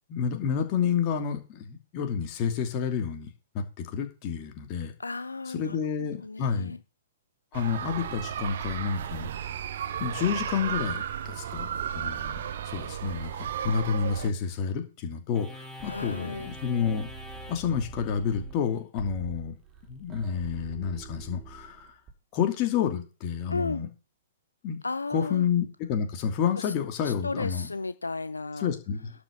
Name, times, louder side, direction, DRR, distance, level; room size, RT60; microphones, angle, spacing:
voice 1, 0.1-3.3 3.5-4.9 5.5-6.8 7.5-9.5 10.0-11.7 11.9-17.1 17.5-19.5 19.9-21.9 22.3-23.9 24.6-24.8 25.1-27.7 28.6-29.1, left 7 dB, 35° left, 5 dB, 2.7 m, -29 dB
voice 2, 5.0-5.8 6.2-6.8 15.8-16.5 23.5-23.8 24.8-25.5 26.6-26.7 27.0-28.7, left 3 dB, 85° left, 14 dB, 0.6 m, -34 dB
sound 1, 7.5-14.3, right 9 dB, 55° right, 1.2 m, -34 dB
sound 2, 15.3-22.1, right 3 dB, 20° right, 3.3 m, -44 dB
12.0 x 6.0 x 6.8 m, 0.32 s
figure-of-eight pair, 115°, 0 cm